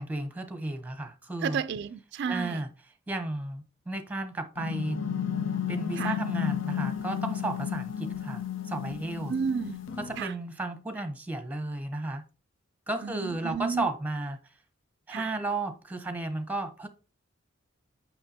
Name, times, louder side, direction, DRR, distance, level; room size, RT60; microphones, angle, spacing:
voice 1, 0.0-1.6 2.3-2.7 3.1-5.0 5.7-8.4 8.7-9.3 10.0-12.2 12.9-14.4 15.1-16.9, right 2 dB, 10° right, 0.8 m, -33 dB
voice 2, 1.4-2.6 6.0-6.2 9.3-9.8 10.2-10.3 13.0-13.9 15.1-15.3, right 6 dB, 60° right, 0.3 m, -32 dB
sound 1, 4.6-10.2, left 8 dB, 70° left, 0.6 m, -33 dB
6.6 x 5.7 x 2.8 m
head